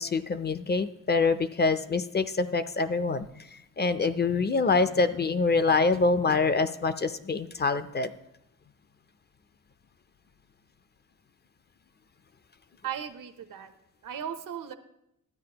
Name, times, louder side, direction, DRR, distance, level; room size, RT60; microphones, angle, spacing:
voice 1, 0.0-8.1, left 4 dB, 35° left, 12 dB, 0.4 m, -25 dB
voice 2, 12.8-13.7 14.0-14.7, right 9 dB, 85° right, 10 dB, 0.8 m, -36 dB
13.0 x 8.9 x 2.9 m, 0.83 s
wide cardioid pair, 105°, 32 cm